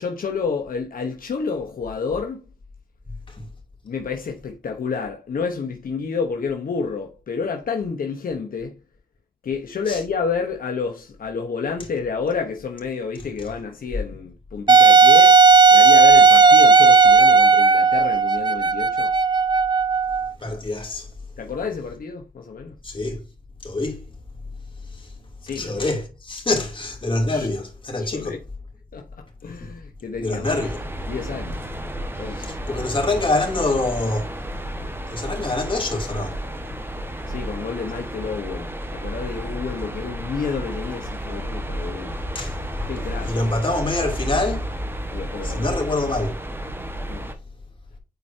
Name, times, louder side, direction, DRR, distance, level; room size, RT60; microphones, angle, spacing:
voice 1, 0.0-2.4 3.8-8.8 9.4-15.4 15.7-19.1 21.4-22.8 25.4-25.8 27.3-27.5 28.0-28.4 28.9-30.6 31.1-31.6 32.2-32.5 37.3-42.2 42.9-43.4 45.1-45.7 47.1-47.3, left 5 dB, 70° left, 1.0 m, -29 dB
Wind instrument woodwind instrument, 14.7-20.3, right 4 dB, 30° right, 0.4 m, -14 dB
voice 2, 20.4-21.1 22.8-23.2 23.6-24.1 24.9-25.1 25.5-28.4 29.6-29.7 30.2-30.8 32.3-34.3 35.1-36.4 42.3-42.6 43.2-44.7 45.4-46.4, left 2 dB, 35° left, 2.9 m, -25 dB
sound 1, 30.4-47.3, right 1 dB, 15° right, 1.4 m, -32 dB
9.4 x 4.5 x 2.8 m
cardioid pair, 85°, 15 cm